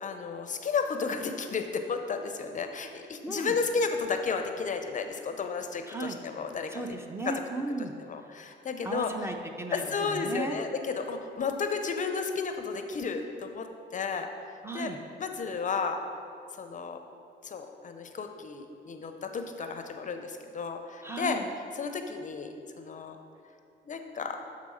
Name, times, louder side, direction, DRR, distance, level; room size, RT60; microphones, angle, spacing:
voice 1, 0.0-6.8 7.3-7.4 7.8-9.3 9.7-13.7 13.9-14.3 14.7-14.9 15.2-16.0 16.6-17.0 17.4-21.4 21.7-23.2 23.8-24.4, left 5 dB, 40° left, 6 dB, 0.5 m, -33 dB
voice 2, 3.2-3.6 5.9-6.2 6.7-7.9 8.8-10.6 14.6-15.0 21.0-21.5, right 2 dB, 10° right, 4 dB, 0.5 m, -35 dB
7.4 x 3.7 x 4.8 m, 2.6 s
cardioid pair, 90°, 20 cm